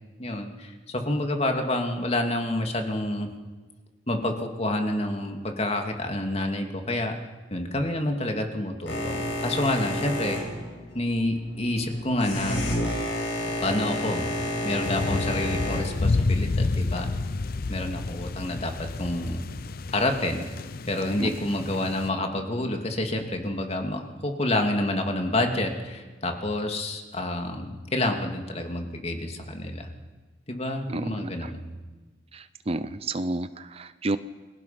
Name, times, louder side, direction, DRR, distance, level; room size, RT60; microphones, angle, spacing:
voice 1, 0.2-3.3 4.1-7.1 7.5-10.4 10.9-12.7 13.6-14.3 14.6-17.1 17.7-19.5 19.9-20.5 20.9-29.9 30.5-31.7, left 1 dB, 35° left, 4 dB, 2.6 m, -28 dB
Boat Water vehicle, 8.9-15.8, left 1 dB, 85° left, 7.8 m, -30 dB
sound 1, 14.8-22.1, left 3 dB, 55° left, 0.6 m, -29 dB
voice 2, 30.9-31.5 32.3-34.2, right 2 dB, 35° right, 12 dB, 0.7 m, -31 dB
29.5 x 22.5 x 6.0 m, 1.3 s
head